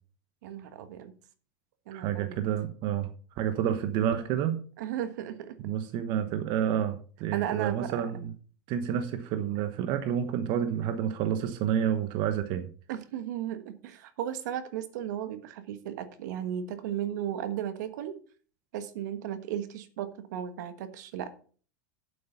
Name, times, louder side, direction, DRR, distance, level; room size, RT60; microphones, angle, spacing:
voice 1, 0.4-1.1 1.9-2.4 4.8-5.6 7.3-8.0 12.9-18.2 18.7-21.3, right 10 dB, 70° right, 1.4 m, -35 dB
voice 2, 1.9-3.1 3.3-4.6 5.6-8.3 8.7-12.7, right 9 dB, 50° right, 1.1 m, -29 dB
8.5 x 7.9 x 5.7 m
hypercardioid pair, 110°, 10 cm